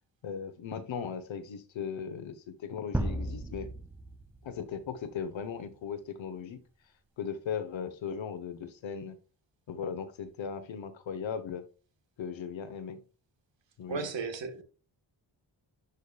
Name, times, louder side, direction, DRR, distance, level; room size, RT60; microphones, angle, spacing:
voice 1, 0.2-3.7 4.4-6.6 7.2-9.2 9.7-11.6 12.2-13.0 13.8-14.1, left 7 dB, 85° left, 1.2 m, -38 dB
sound 1, 2.9-4.9, right 1 dB, 5° right, 0.4 m, -35 dB
voice 2, 13.9-14.6, right 4 dB, 75° right, 1.6 m, -35 dB
11.0 x 5.2 x 2.4 m
cardioid pair, 95°, 45 cm